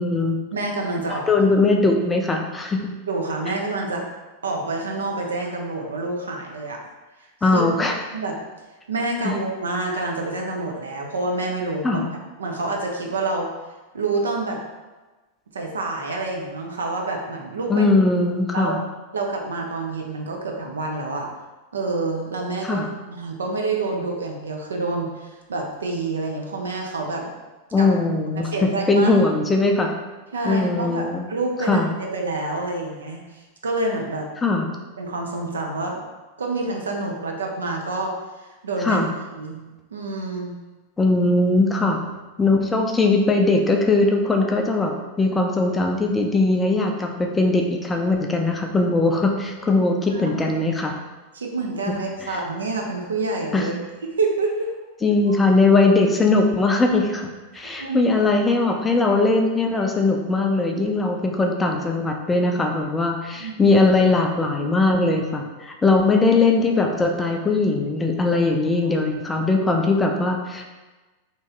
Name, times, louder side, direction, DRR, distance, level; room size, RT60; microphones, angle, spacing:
voice 1, 0.0-0.4 1.1-2.9 7.4-7.9 9.2-9.3 11.8-12.0 17.7-18.8 22.6-22.8 27.7-29.9 30.4-31.3 31.7-31.9 34.4-34.7 38.8-39.1 41.0-42.0 42.4-50.9 52.2-52.4 53.5-53.7 55.0-57.3 57.5-70.7, left 3 dB, 15° left, 2 dB, 0.4 m, -20 dB
voice 2, 0.5-1.2 3.1-4.0 4.4-6.8 7.4-7.6 8.1-8.3 8.9-12.0 12.4-13.5 13.9-14.6 15.5-17.9 18.5-18.8 19.1-21.3 21.7-22.8 23.1-27.3 27.8-27.9 28.3-29.1 30.3-34.3 35.0-36.0 36.4-38.1 38.6-39.0 39.3-39.6 39.9-40.5 50.1-50.4 51.3-53.7 54.2-54.7 57.5-58.1 63.4-63.8, right 3 dB, 70° right, 1 dB, 0.5 m, -27 dB
2.9 x 2.7 x 3.6 m, 1.2 s
figure-of-eight pair, 90°, 0 cm